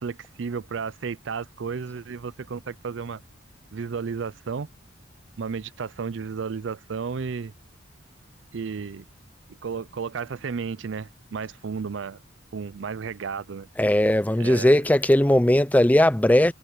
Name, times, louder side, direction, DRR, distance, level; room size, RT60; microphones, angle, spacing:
voice 1, 0.0-3.2 3.7-4.7 5.4-7.5 8.5-9.0 9.6-12.2 12.5-13.7 14.4-14.8, right 5 dB, 65° right, 0.5 m, -33 dB
voice 2, 13.8-16.5, left 1 dB, 10° left, 0.5 m, -18 dB
head